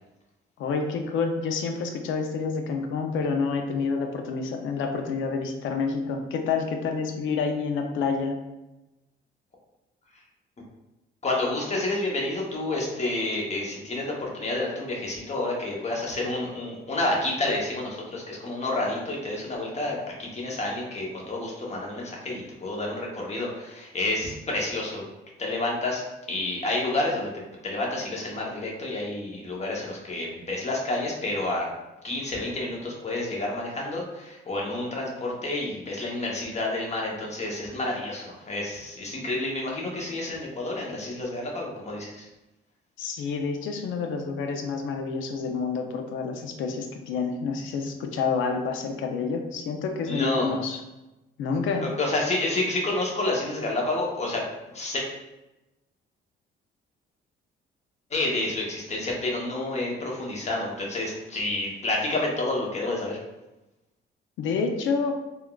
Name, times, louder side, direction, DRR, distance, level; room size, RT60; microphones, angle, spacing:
voice 1, 0.6-8.4 43.0-50.8 51.4-51.9 64.4-65.2, left 5 dB, 80° left, 4 dB, 0.5 m, -28 dB
voice 2, 11.2-25.0 25.4-26.0 26.3-31.7 32.0-42.3 50.1-50.5 51.8-54.4 54.7-55.1 58.1-63.2, left 2 dB, 35° left, -2 dB, 0.8 m, -29 dB
3.5 x 2.3 x 2.3 m, 1.0 s
cardioid pair, 90°, 20 cm